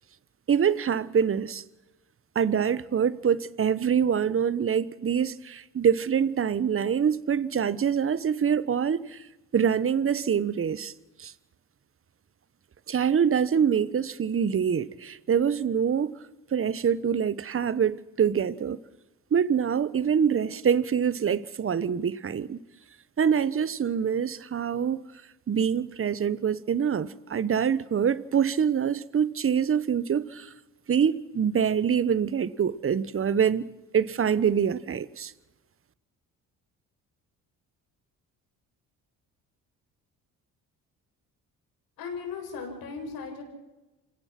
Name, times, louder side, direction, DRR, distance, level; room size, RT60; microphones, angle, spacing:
voice 1, 0.5-1.6 2.3-9.3 9.5-10.9 11.2-11.3 12.9-16.2 16.5-18.8 19.3-22.6 23.2-25.1 25.5-30.5 30.9-35.3, right 7 dB, 35° right, 1.1 m, -25 dB
voice 2, 42.0-43.4, left 5 dB, 80° left, 7.3 m, -37 dB
27.5 x 17.0 x 6.0 m
supercardioid pair, 70°, 36 cm